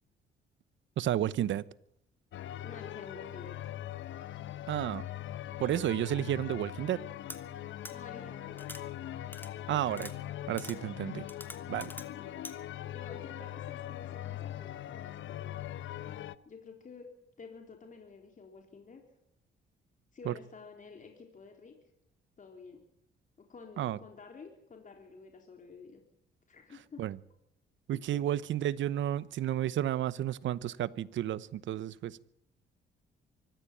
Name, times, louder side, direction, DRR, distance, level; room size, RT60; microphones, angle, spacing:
voice 1, 1.0-1.6 4.7-5.1 5.6-7.0 9.7-10.1 10.5-11.3 11.7-11.9 20.2-20.3 23.8-24.0 27.0-27.2 27.9-32.3, right 12 dB, 75° right, 1.0 m, -32 dB
sound 1, 2.3-16.4, left 12 dB, 70° left, 1.0 m, -41 dB
voice 2, 2.6-3.6 7.9-9.0 12.2-12.5 12.8-15.6 16.5-17.1 17.4-19.0 20.1-21.7 22.4-22.8 23.5-26.0 26.5-27.0 27.9-28.2, left 4 dB, 40° left, 4.1 m, -50 dB
sound 2, 7.3-7.4 7.8-7.9 8.6-8.8 9.3-9.5 9.9-10.1 10.6-10.8 11.3-12.1 12.4-12.5, left 1 dB, 10° left, 3.0 m, -44 dB
24.5 x 15.0 x 8.6 m
cardioid pair, 90°, 20 cm